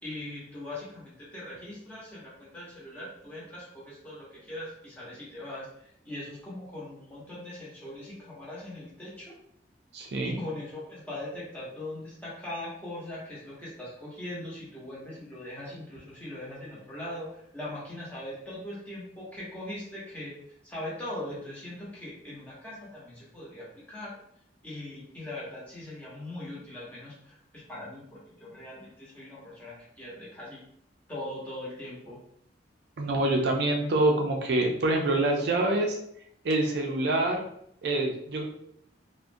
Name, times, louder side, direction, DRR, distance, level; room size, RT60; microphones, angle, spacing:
voice 1, 0.0-9.4 10.2-20.4 20.6-24.2 24.6-30.6 31.1-32.2, left 1 dB, 10° left, -7 dB, 0.8 m, -40 dB
voice 2, 9.9-10.4 33.0-36.0 36.4-37.4 37.8-38.4, right 2 dB, 60° right, 1 dB, 0.4 m, -26 dB
2.3 x 2.1 x 2.6 m, 0.71 s
head